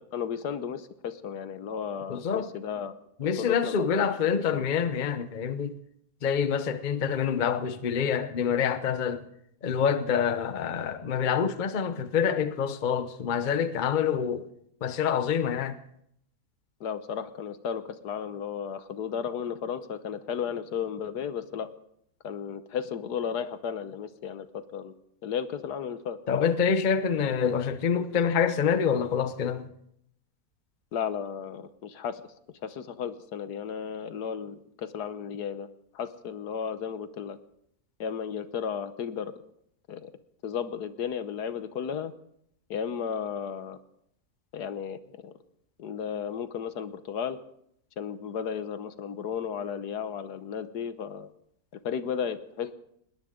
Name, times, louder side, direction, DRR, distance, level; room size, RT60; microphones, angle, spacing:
voice 1, 0.0-2.9 3.2-4.1 16.8-21.7 22.2-24.9 25.2-26.2 30.9-32.2 32.6-35.7 35.9-37.4 38.0-39.3 39.9-40.1 40.4-42.1 42.7-43.8 44.5-45.3 45.8-47.4 48.0-51.3 51.8-52.7, left 7 dB, 75° left, 1.5 m, -34 dB
voice 2, 2.1-2.5 3.2-5.8 6.2-9.3 9.6-14.5 14.8-15.8 26.3-29.7, left 7 dB, 40° left, 0.8 m, -26 dB
20.5 x 18.5 x 3.8 m
omnidirectional pair, 1.7 m